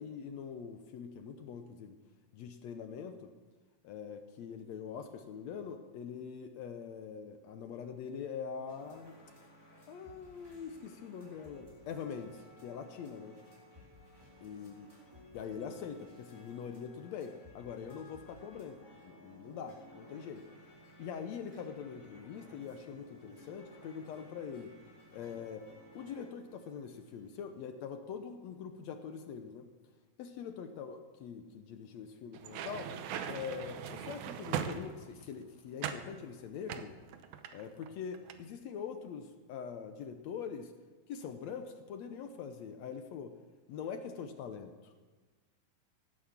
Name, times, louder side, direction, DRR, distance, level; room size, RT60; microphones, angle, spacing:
voice 1, 0.0-2.0 2.3-3.3 3.8-9.2 9.9-13.4 14.4-14.9 15.3-20.4 21.0-24.7 25.1-29.7 30.2-32.9 33.3-37.0 37.5-40.7 41.1-43.3 43.7-44.9, left 7 dB, 70° left, 7 dB, 1.8 m, -43 dB
sound 1, 8.7-27.3, equal, 5° right, 4.1 m, -57 dB
sound 2, 32.3-35.3 35.8-36.1 36.7-37.9 38.1-38.4, right 8 dB, 75° right, 2.2 m, -39 dB
17.0 x 9.3 x 7.2 m, 1.3 s
omnidirectional pair, 3.8 m